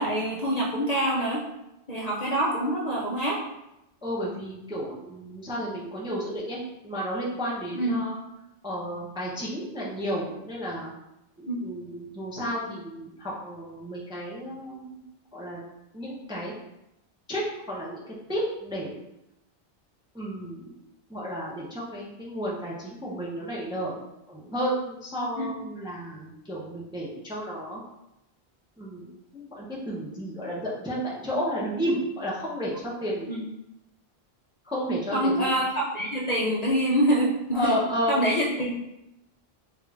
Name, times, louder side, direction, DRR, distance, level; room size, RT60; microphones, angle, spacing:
voice 1, 0.0-1.4 1.9-3.4 7.7-8.1 11.5-11.7 25.4-25.5 33.3-33.4 35.1-37.7 38.1-38.8, right 1 dB, 50° left, -4 dB, 0.5 m, -25 dB
voice 2, 4.0-8.1 8.6-10.9 11.4-15.0 15.3-15.6 15.9-16.5 17.3-18.9 20.1-20.7 21.1-24.0 24.3-27.8 28.8-33.4 34.6-35.5 37.5-38.2, equal, 5° right, -5 dB, 0.4 m, -32 dB
3.6 x 2.4 x 3.2 m, 0.88 s
omnidirectional pair, 1.1 m